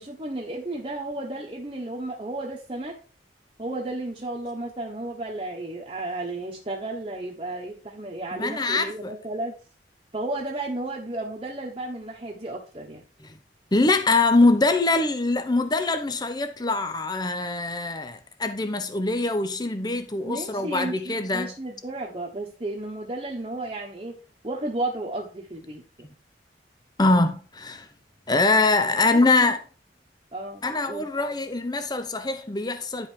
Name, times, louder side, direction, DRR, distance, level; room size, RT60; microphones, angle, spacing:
voice 1, 0.0-3.0 3.6-9.5 10.1-13.0 20.2-24.2 24.4-25.8 29.1-29.5 30.3-31.1, right 2 dB, 30° right, 1.3 m, -33 dB
voice 2, 8.3-9.2 13.2-13.3 13.7-21.5 27.0-27.9 28.3-29.6 30.6-33.1, left 3 dB, 25° left, 0.8 m, -23 dB
10.5 x 5.4 x 4.6 m
head